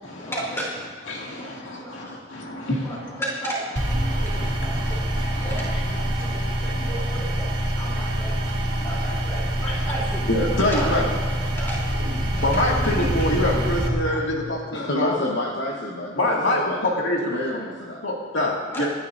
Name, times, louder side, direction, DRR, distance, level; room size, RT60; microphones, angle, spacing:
voice 1, 0.2-0.7 1.2-2.2 2.7-5.0 5.4-8.5 8.8-10.3 10.7-10.9 11.6-11.9 12.4-13.3 14.1-14.3 17.6-17.7 18.7-18.9, right 1 dB, 15° left, -6 dB, 3.3 m, -34 dB
voice 2, 1.1-3.2 4.1-5.7 6.2-6.3 8.0-8.1 8.8-8.9 9.7-9.9 10.3-11.1 12.4-15.1 16.2-17.4 18.0-18.9, left 1 dB, 75° left, -2 dB, 2.1 m, -26 dB
sound 1, 3.8-13.9, equal, 60° right, 2.3 m, -25 dB
voice 3, 14.7-16.9 17.2-18.1, left 1 dB, 55° left, -1 dB, 1.1 m, -29 dB
24.5 x 10.0 x 2.6 m, 1.5 s
head